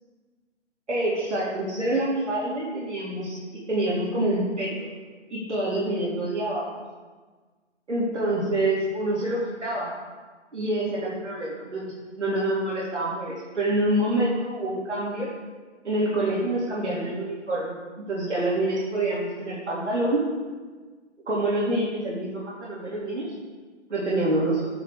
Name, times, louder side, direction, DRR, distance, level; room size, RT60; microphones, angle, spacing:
voice 1, 0.9-3.4 3.7-4.9 5.3-6.8 7.9-9.9 10.5-15.3 15.8-20.2 21.3-23.3 23.9-24.7, right 1 dB, 65° right, -6 dB, 2.9 m, -26 dB
10.5 x 9.1 x 3.7 m, 1.4 s
hypercardioid pair, 175°, 37 cm